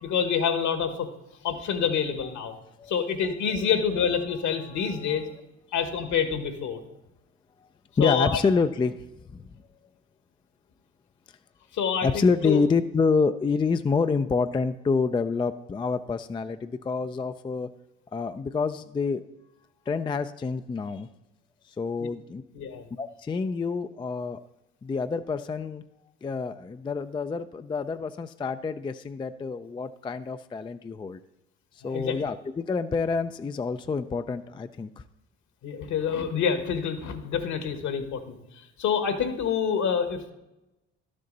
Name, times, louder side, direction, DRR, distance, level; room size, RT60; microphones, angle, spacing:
voice 1, 0.0-1.1 1.4-2.5 2.9-5.2 5.7-6.8 8.0-8.4 11.7-12.6 22.0-22.1 22.5-22.8 31.8-32.2 35.6-38.4 38.8-40.3, left 7 dB, 60° left, 9 dB, 1.4 m, -27 dB
voice 2, 2.2-2.9 3.5-3.7 4.6-5.2 8.0-9.1 9.3-9.5 12.0-17.7 18.1-19.2 19.9-21.1 21.6-22.4 23.0-24.4 24.8-25.8 26.2-31.2 31.7-35.0, left 4 dB, 15° left, 10 dB, 0.4 m, -28 dB
12.0 x 6.7 x 4.0 m, 0.94 s
hypercardioid pair, 60°, 33 cm